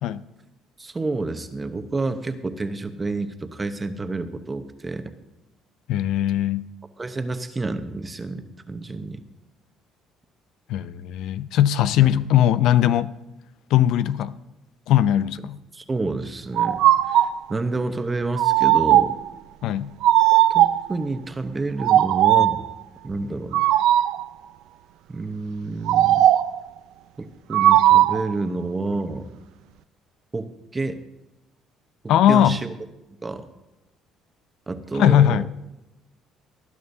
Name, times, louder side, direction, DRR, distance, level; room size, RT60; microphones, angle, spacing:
voice 1, 0.8-5.1 7.0-9.2 12.0-12.2 15.7-16.8 17.1-19.1 20.5-22.6 23.0-23.6 25.1-26.3 27.2-29.3 30.3-31.0 32.3-32.7 33.2-33.5 34.7-35.5, right 3 dB, 20° right, 0.9 m, -29 dB
voice 2, 5.9-6.7 10.7-13.1 13.7-14.3 14.9-15.6 19.6-19.9 32.1-32.6 34.9-35.5, left 11 dB, 75° left, 0.4 m, -19 dB
sound 1, 16.6-17.4 18.4-19.3 20.0-20.9 21.8-22.7 23.5-24.2 25.9-26.6 27.5-28.3, right 13 dB, 80° right, 0.4 m, -17 dB
19.0 x 11.0 x 2.7 m
cardioid pair, 130°, 0 cm